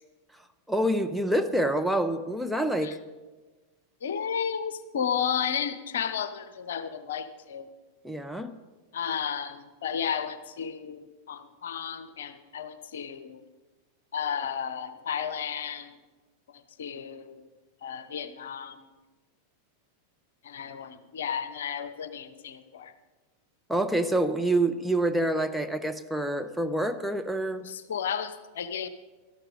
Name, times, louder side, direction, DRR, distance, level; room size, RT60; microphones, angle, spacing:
voice 1, 0.7-3.0 8.0-8.5 23.7-27.7, right 1 dB, ahead, 6 dB, 0.7 m, -27 dB
voice 2, 4.0-7.7 8.9-13.4 14.1-15.9 16.5-17.4 17.8-18.9 20.4-22.9 27.6-28.9, left 7 dB, 60° left, 11 dB, 0.8 m, -33 dB
12.5 x 12.5 x 5.0 m, 1.2 s
figure-of-eight pair, 90°, 0 cm